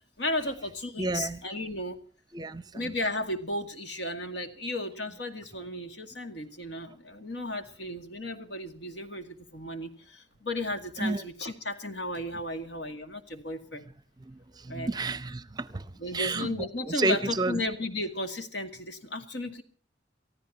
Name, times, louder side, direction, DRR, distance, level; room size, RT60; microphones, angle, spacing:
voice 1, 0.2-2.0 2.7-13.8 14.7-14.9 16.0-19.6, left 1 dB, 70° left, 2.1 m, -34 dB
voice 2, 1.0-1.4 2.3-2.9 11.0-11.2 14.3-15.9 16.1-17.6, right 2 dB, 20° right, 0.7 m, -31 dB
29.5 x 14.5 x 2.8 m
head